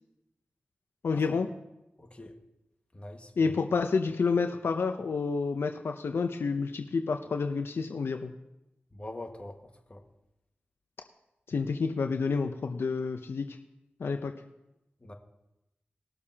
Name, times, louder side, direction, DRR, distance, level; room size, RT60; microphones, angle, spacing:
voice 1, 1.0-1.5 3.4-8.3 11.5-13.6 14.0-14.3, left 4 dB, 80° left, 6 dB, 0.6 m, -29 dB
voice 2, 2.0-2.4 2.9-3.5 8.9-9.6 9.9-10.0 15.0-15.1, left 1 dB, 30° left, 3 dB, 1.7 m, -43 dB
20.5 x 6.8 x 2.8 m, 0.93 s
cardioid pair, 40°, 4 cm